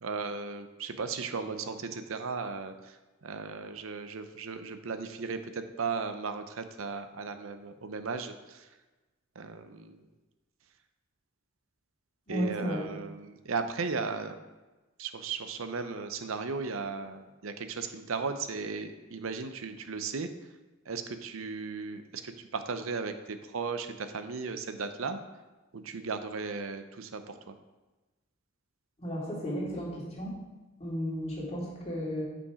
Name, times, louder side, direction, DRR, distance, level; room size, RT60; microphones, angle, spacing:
voice 1, 0.0-3.0 3.2-8.7 9.4-10.0 12.3-14.4 15.0-20.3 20.9-25.2 25.7-27.5, right 4 dB, 75° right, 9 dB, 0.6 m, -36 dB
voice 2, 12.3-12.8 29.0-30.4 30.8-32.2, equal, 30° left, -5 dB, 2.3 m, -33 dB
8.5 x 5.2 x 4.8 m, 1.2 s
head